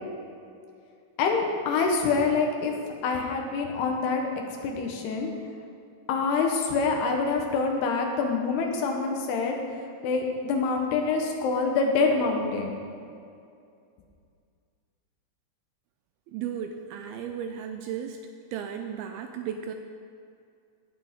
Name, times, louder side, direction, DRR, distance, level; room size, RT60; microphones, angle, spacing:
voice 1, 1.2-2.7 3.0-4.2 4.6-5.3 6.1-9.6 10.0-12.8, left 4 dB, 80° left, 2 dB, 3.1 m, -26 dB
voice 2, 16.3-18.2 18.5-19.7, right 8 dB, 85° right, 5 dB, 2.2 m, -35 dB
17.5 x 6.6 x 3.6 m, 2.4 s
omnidirectional pair, 4.7 m